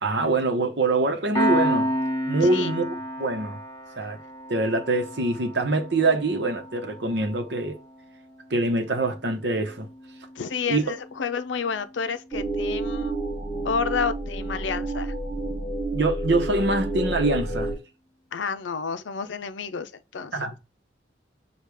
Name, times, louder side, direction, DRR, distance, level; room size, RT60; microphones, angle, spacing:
voice 1, 0.0-1.9 2.2-2.8 3.2-3.6 4.0-4.2 4.5-7.8 8.5-9.9 10.7-10.8 15.9-17.8 20.3-20.5, right 2 dB, 65° right, 0.9 m, -24 dB
Piano, 1.3-12.4, equal, 20° left, 1.9 m, -32 dB
voice 2, 2.4-2.7 10.4-13.2 13.6-15.1 18.3-20.5, left 6 dB, 80° left, 0.5 m, -30 dB
sound 1, 12.3-17.8, right 2 dB, 10° right, 1.5 m, -29 dB
6.4 x 2.4 x 3.4 m
head